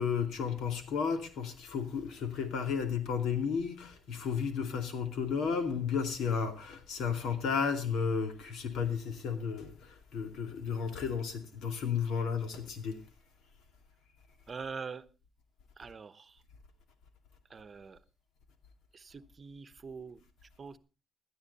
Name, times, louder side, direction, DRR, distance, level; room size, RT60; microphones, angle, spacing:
voice 1, 0.0-13.0, left 6 dB, 80° left, 2.4 m, -33 dB
voice 2, 14.5-15.1 15.8-16.4 17.5-18.0 18.9-20.8, right 5 dB, 40° right, 1.0 m, -44 dB
17.0 x 12.5 x 4.1 m
cardioid pair, 90°, 0 cm